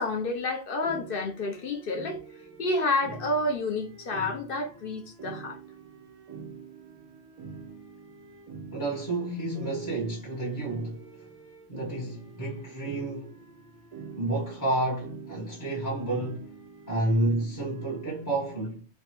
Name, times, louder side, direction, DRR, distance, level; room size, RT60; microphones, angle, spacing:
voice 1, 0.0-2.2 2.6-5.6, left 2 dB, 60° left, 0.8 m, -29 dB
sound 1, 0.8-18.3, right 4 dB, 45° right, 0.5 m, -46 dB
voice 2, 8.7-11.1 11.7-13.4 14.2-16.5 16.9-18.8, right 2 dB, 20° left, 0.7 m, -30 dB
3.2 x 2.1 x 2.9 m
omnidirectional pair, 1.1 m